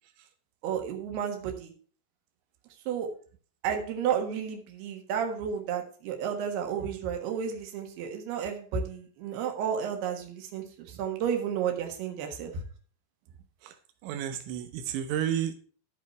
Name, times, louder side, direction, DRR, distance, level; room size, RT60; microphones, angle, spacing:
voice 1, 0.6-1.7 2.9-3.1 3.6-12.6, right 8 dB, 70° right, 3 dB, 3.4 m, -32 dB
voice 2, 14.0-15.5, right 10 dB, 90° right, 7 dB, 3.2 m, -31 dB
13.0 x 5.0 x 4.5 m, 0.42 s
omnidirectional pair, 5.1 m